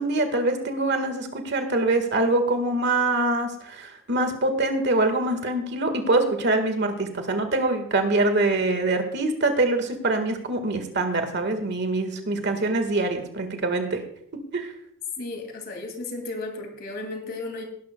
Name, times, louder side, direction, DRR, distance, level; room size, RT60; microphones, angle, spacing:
voice 1, 0.0-14.0 14.5-14.7, right 2 dB, 55° right, 6 dB, 1.7 m, -24 dB
voice 2, 15.2-17.6, left 2 dB, 50° left, 3 dB, 2.6 m, -34 dB
18.0 x 11.5 x 2.3 m, 0.68 s
head